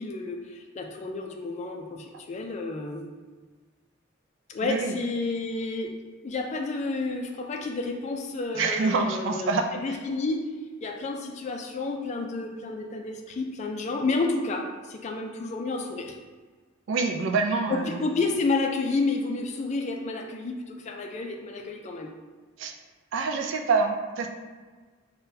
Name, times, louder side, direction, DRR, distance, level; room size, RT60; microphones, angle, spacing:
voice 1, 0.0-3.1 4.5-6.0 6.2-9.5 9.8-10.5 10.8-16.1 17.7-22.1, left 3 dB, 35° left, 3 dB, 0.3 m, -30 dB
voice 2, 4.6-5.0 8.5-9.7 16.9-18.0 22.6-22.7 23.1-24.3, right 4 dB, 65° right, 4 dB, 0.3 m, -26 dB
3.7 x 2.2 x 2.7 m, 1.4 s
head